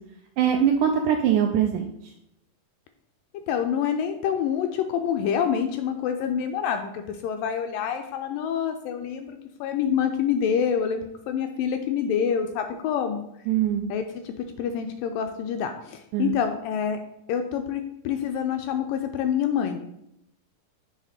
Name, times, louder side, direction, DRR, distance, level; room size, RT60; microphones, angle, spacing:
voice 1, 0.4-1.9 13.5-13.9 16.1-16.3, right 9 dB, 90° right, 3 dB, 1.8 m, -22 dB
voice 2, 3.5-13.2 13.9-17.0 17.3-19.8, left 8 dB, 80° left, 6 dB, 2.0 m, -27 dB
7.3 x 3.5 x 5.6 m, 0.78 s
omnidirectional pair, 4.2 m